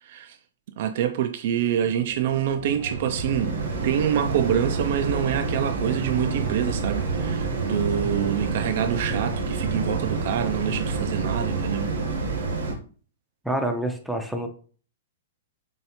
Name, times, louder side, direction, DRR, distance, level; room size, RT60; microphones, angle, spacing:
voice 1, 0.0-0.4 0.8-3.6 3.8-11.9, right 10 dB, 55° right, 0.3 m, -26 dB
sound 1, 1.5-12.7, right 3 dB, 85° right, 1.0 m, -28 dB
voice 2, 13.4-14.5, right 1 dB, 5° right, 0.5 m, -28 dB
4.2 x 3.1 x 2.8 m
hypercardioid pair, 140°, 0 cm